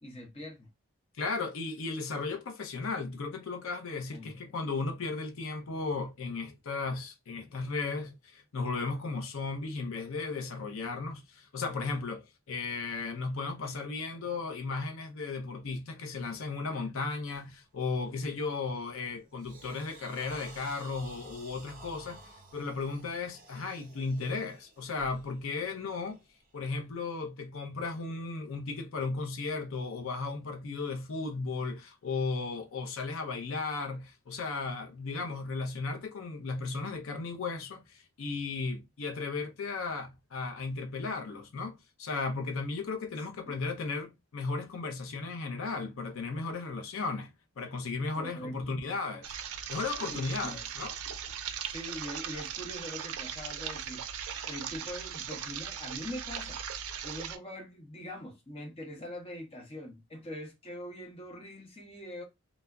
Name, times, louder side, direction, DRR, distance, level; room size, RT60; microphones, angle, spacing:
voice 1, 0.0-0.7 4.1-4.3 18.3-18.4 43.2-43.6 48.1-48.5 50.0-50.6 51.7-54.0 54.4-56.6 57.0-62.2, equal, 25° left, 0.7 m, -43 dB
voice 2, 1.2-22.2 22.5-26.2 26.5-47.3 47.6-49.4 49.7-50.9, left 4 dB, 70° left, 0.5 m, -35 dB
sound 1, 17.3-17.6 18.0-18.3 18.8-26.9, right 2 dB, 40° right, 0.7 m, -53 dB
sound 2, 49.2-57.4, right 8 dB, 90° right, 0.4 m, -39 dB
2.2 x 2.0 x 3.4 m
head